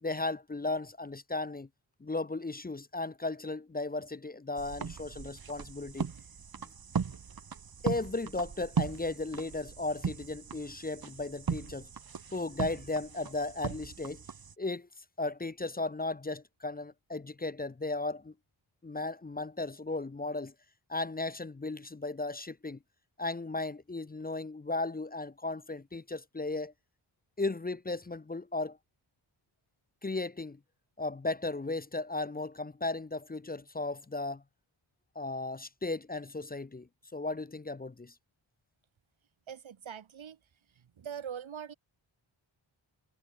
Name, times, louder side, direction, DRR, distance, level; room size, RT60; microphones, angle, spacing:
voice 1, 0.0-1.7 2.0-6.1 6.6-6.7 7.8-11.9 12.3-14.2 14.6-14.9 15.2-18.3 18.8-20.5 20.9-22.8 23.2-26.7 27.4-28.8 30.0-30.6 31.0-34.4 35.2-38.1, left 2 dB, 20° left, 0.5 m, -35 dB
sound 1, 4.6-14.5, right 6 dB, 45° right, 1.0 m, -38 dB
voice 2, 39.5-40.4 40.7-41.7, right 8 dB, 70° right, 1.1 m, -42 dB
wide cardioid pair, 85°, 48 cm